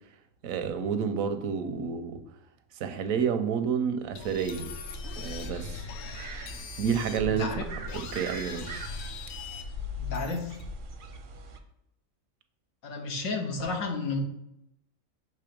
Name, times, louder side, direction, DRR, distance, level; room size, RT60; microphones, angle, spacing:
voice 1, 0.4-2.2 2.8-4.7 5.2-5.8 6.8-7.5 7.9-8.9, right 7 dB, 85° right, 1.0 m, -29 dB
sound 1, 4.2-11.0, left 5 dB, 60° left, 0.8 m, -39 dB
sound 2, 4.8-11.6, right 5 dB, 55° right, 0.6 m, -43 dB
voice 2, 7.3-7.6 10.0-10.6 12.8-14.2, left 3 dB, 85° left, 1.4 m, -32 dB
6.8 x 3.2 x 5.0 m
omnidirectional pair, 1.4 m